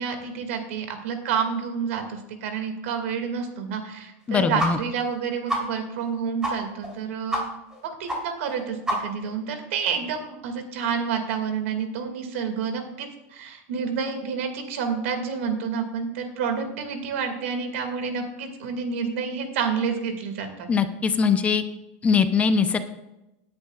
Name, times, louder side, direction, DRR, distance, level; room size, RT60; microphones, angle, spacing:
voice 1, 0.0-7.4 8.0-20.7, right 6 dB, 75° right, 5 dB, 2.3 m, -29 dB
voice 2, 4.3-4.8 20.7-21.6 22.0-22.8, left 6 dB, 20° left, 9 dB, 0.7 m, -21 dB
sound 1, 4.6-4.7 5.0-5.1 5.5-5.6 6.0-6.1 6.4-6.5 6.8-6.9 7.3-7.4 7.7-7.8 8.1-8.2 8.5-8.6 8.9-9.3, right 1 dB, 10° right, 3.7 m, -26 dB
17.5 x 10.5 x 2.5 m, 0.93 s
supercardioid pair, 145°, 7 cm